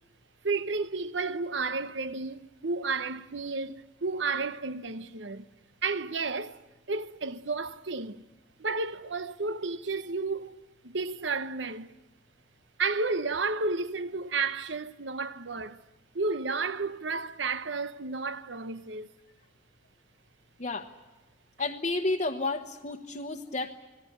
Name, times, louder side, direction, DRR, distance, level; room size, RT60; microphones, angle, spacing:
voice 1, 0.4-5.5 5.8-6.6 6.9-8.2 8.6-10.5 10.8-11.9 12.8-15.8 16.1-19.1, right 4 dB, 75° right, 0.9 m, -32 dB
voice 2, 21.6-23.7, left 2 dB, 40° left, 1.1 m, -31 dB
27.0 x 19.5 x 8.1 m
head